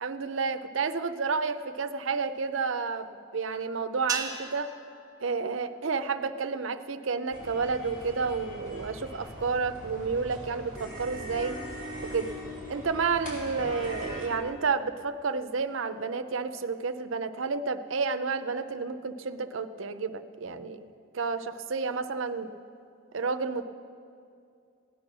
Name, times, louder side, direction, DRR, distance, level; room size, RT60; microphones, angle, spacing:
voice 1, 0.0-4.7 5.2-11.5 12.0-12.3 12.7-20.9 21.1-22.5 23.1-23.6, right 4 dB, 70° right, 10 dB, 0.6 m, -30 dB
sound 1, 4.1-6.5, right 5 dB, 20° right, 1.1 m, -38 dB
sound 2, 7.3-14.3, equal, 40° left, 4.4 m, -41 dB
16.5 x 10.5 x 6.1 m, 2.5 s
head